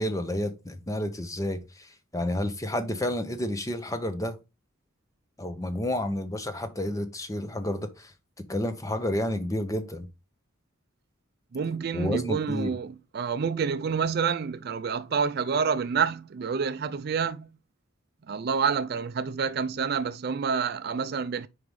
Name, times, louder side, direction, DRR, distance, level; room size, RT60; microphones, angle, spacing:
voice 1, 0.0-4.4 5.4-8.1 8.5-10.1 11.9-12.8, left 1 dB, 15° left, 0.7 m, -30 dB
voice 2, 11.5-17.5 18.3-21.5, right 6 dB, 50° right, 0.4 m, -28 dB
4.9 x 4.8 x 5.3 m
head